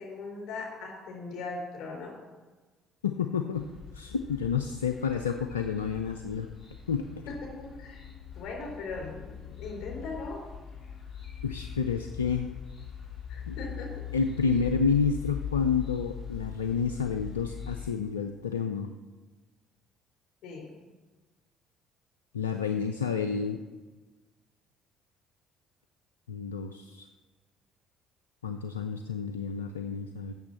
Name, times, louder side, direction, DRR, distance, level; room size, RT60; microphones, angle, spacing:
voice 1, 0.0-2.1 7.3-8.0 8.4-10.4 13.3-13.9 20.4-20.7, left 3 dB, 60° left, 0 dB, 3.7 m, -39 dB
voice 2, 3.0-3.7 3.9-6.5 6.9-7.1 11.4-12.5 13.5-13.6 14.1-18.9 22.3-23.6 26.3-27.1 28.4-30.3, left 6 dB, 85° left, 7 dB, 0.4 m, -29 dB
sound 1, 3.5-17.9, left 8 dB, 25° left, 3.3 m, -41 dB
8.1 x 7.1 x 7.5 m, 1.3 s
figure-of-eight pair, 50°, 0 cm